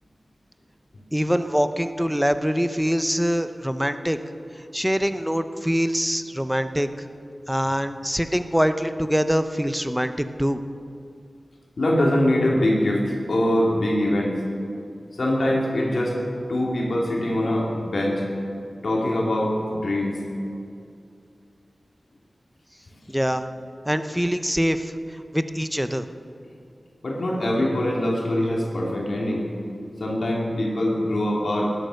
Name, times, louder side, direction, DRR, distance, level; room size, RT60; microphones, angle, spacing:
voice 1, 1.1-4.2 4.7-6.9 7.5-10.1 10.4-10.6 23.1-23.5 23.9-24.9 25.3-26.1, equal, 5° right, 10 dB, 0.8 m, -24 dB
voice 2, 11.8-14.4 15.2-16.2 16.5-18.2 18.8-20.2 27.0-29.4 30.0-31.7, left 1 dB, 75° left, -3 dB, 2.9 m, -23 dB
18.5 x 11.0 x 6.5 m, 2.5 s
wide cardioid pair, 80°, 0 cm